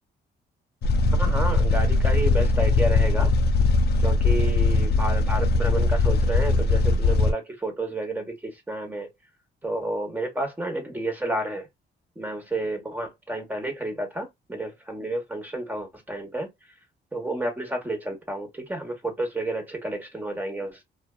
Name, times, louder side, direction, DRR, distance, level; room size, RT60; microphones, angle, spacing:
sound 1, 0.8-7.3, left 3 dB, 55° left, 0.4 m, -20 dB
voice 1, 1.1-3.3 4.0-9.1 9.6-11.7 12.2-16.5 17.1-20.8, right 1 dB, 10° right, 1.1 m, -31 dB
2.5 x 2.3 x 2.3 m
cardioid pair, 90°, 20 cm